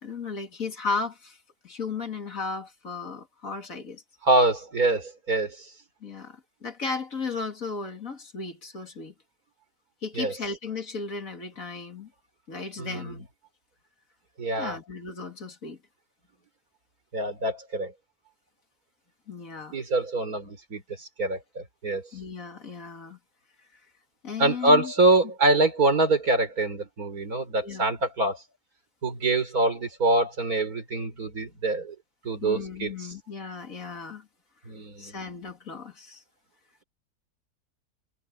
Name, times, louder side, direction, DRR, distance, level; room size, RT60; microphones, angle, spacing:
voice 1, 0.0-1.4 1.6-4.0 6.0-9.1 10.0-12.1 12.5-13.3 14.6-15.8 19.3-19.8 22.1-23.2 24.2-24.9 27.6-27.8 32.4-34.3 35.0-36.2, left 4 dB, 55° left, 2.9 m, -35 dB
voice 2, 4.2-5.7 10.2-10.3 12.8-13.2 14.4-14.8 17.1-17.9 19.7-22.0 24.4-28.4 29.0-32.0 32.2-32.9 34.7-35.2, right 2 dB, 65° right, 4.3 m, -25 dB
omnidirectional pair, 1.7 m